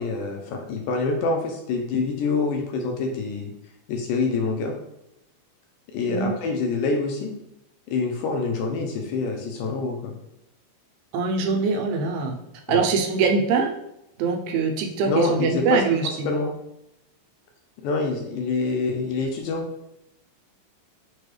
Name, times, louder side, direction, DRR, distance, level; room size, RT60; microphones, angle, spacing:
voice 1, 0.0-3.5 3.9-4.8 5.9-7.3 7.9-10.2 12.7-12.9 15.0-16.5 17.8-19.6, left 3 dB, 80° left, 2 dB, 1.9 m, -26 dB
voice 2, 11.1-12.4 12.7-13.7 14.2-16.3, right 4 dB, 85° right, 2 dB, 2.2 m, -23 dB
6.0 x 2.2 x 3.2 m, 0.83 s
omnidirectional pair, 3.9 m